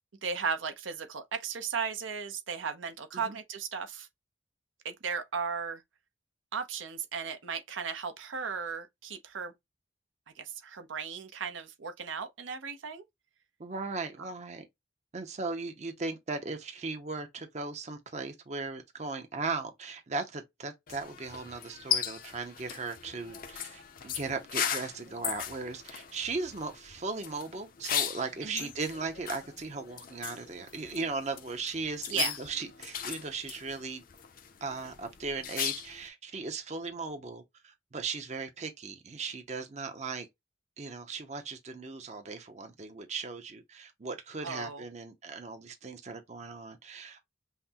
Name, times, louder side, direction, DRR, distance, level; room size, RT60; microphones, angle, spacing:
voice 1, 0.2-4.1 4.8-5.8 6.5-9.5 10.4-13.0 28.4-28.7 32.1-32.3 44.4-44.8, right 6 dB, 85° right, 0.7 m, -36 dB
voice 2, 13.6-14.6 15.1-34.0 34.6-40.3 40.8-47.3, right 4 dB, 35° right, 0.6 m, -37 dB
sound 1, 20.9-36.1, left 9 dB, 45° left, 0.5 m, -38 dB
5.7 x 2.0 x 2.8 m
head